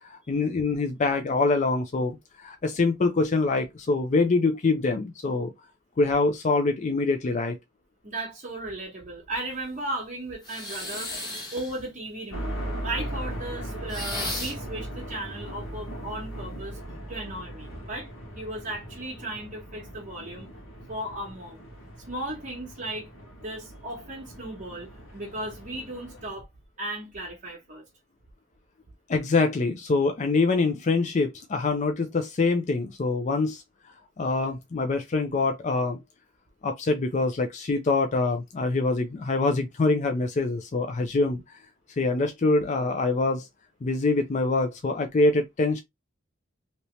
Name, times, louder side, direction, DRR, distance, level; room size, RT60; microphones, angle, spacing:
voice 1, 0.0-5.5 6.0-7.6 29.1-33.6 34.2-36.0 36.6-41.6 42.0-43.5 43.8-45.8, left 3 dB, 40° left, 0.4 m, -25 dB
voice 2, 8.0-16.8 17.1-18.1 18.4-20.5 20.9-21.6 22.1-23.1 23.4-26.5 26.8-27.8, right 1 dB, 40° right, 1.0 m, -36 dB
sound 1, 10.4-11.8 13.9-14.7, left 2 dB, 20° left, 1.4 m, -34 dB
sound 2, 12.3-26.3, right 1 dB, 90° left, 1.4 m, -39 dB
2.9 x 2.8 x 3.0 m
head